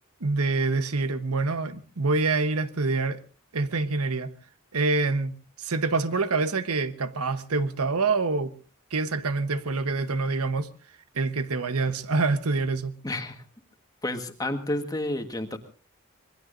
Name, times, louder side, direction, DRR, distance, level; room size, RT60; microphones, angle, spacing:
voice 1, 0.2-3.2 3.5-4.3 4.7-8.5 8.9-10.7 11.1-12.9, right 3 dB, 85° right, 1.1 m, -26 dB
voice 2, 13.0-13.4 14.0-15.6, left 1 dB, 15° left, 1.5 m, -30 dB
26.0 x 21.0 x 2.6 m
head